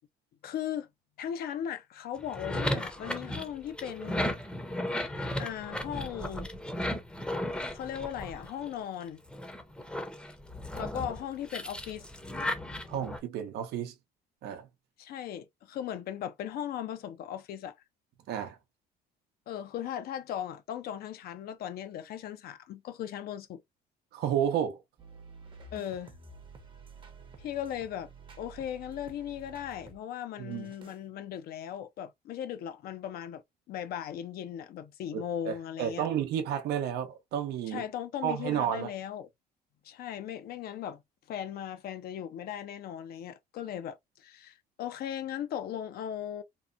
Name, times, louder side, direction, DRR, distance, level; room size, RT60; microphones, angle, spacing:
voice 1, 0.4-0.9 1.2-4.3 5.4-6.5 7.7-9.2 10.7-12.0 15.0-17.8 19.5-23.6 25.7-26.1 27.4-28.1 28.4-33.4 33.7-36.1 37.7-39.3 39.8-41.0 41.3-46.4, left 10 dB, 65° left, 0.6 m, -38 dB
sound 1, 2.2-8.8 9.3-13.2, left 1 dB, 5° left, 0.6 m, -35 dB
voice 2, 12.9-13.9 14.4-14.7 18.3-18.6 24.1-24.8 30.4-30.7 35.5-35.6 35.8-37.8 38.2-38.9, right 9 dB, 75° right, 0.6 m, -31 dB
sound 2, 25.0-30.0 30.5-31.0, right 3 dB, 30° right, 0.8 m, -51 dB
2.9 x 2.1 x 2.4 m
cardioid pair, 110°, 17 cm